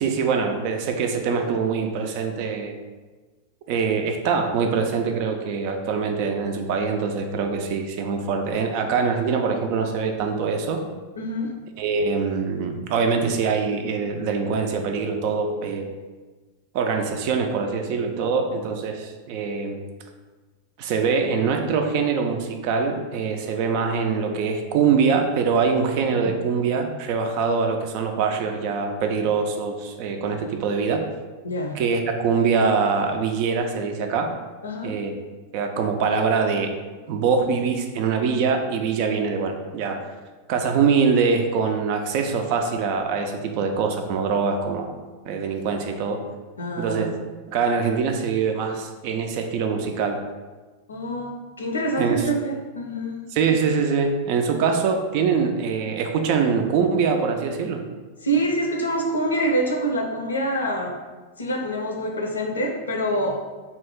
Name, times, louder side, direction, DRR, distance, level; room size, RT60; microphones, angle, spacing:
voice 1, 0.0-2.8 3.7-10.8 11.8-15.9 16.7-19.8 20.8-31.0 31.7-34.3 34.8-35.1 35.5-36.7 37.1-40.1 40.5-46.2 46.8-47.1 47.5-50.2 52.0-52.2 53.3-57.8, right 5 dB, 45° right, 5 dB, 0.4 m, -23 dB
voice 2, 11.2-11.5 31.4-31.8 34.6-35.0 46.6-47.1 50.9-51.3 51.6-53.2 58.2-61.0 61.4-63.4, right 1 dB, 75° left, 1 dB, 0.5 m, -26 dB
2.7 x 2.5 x 3.4 m, 1.3 s
figure-of-eight pair, 90°, 0 cm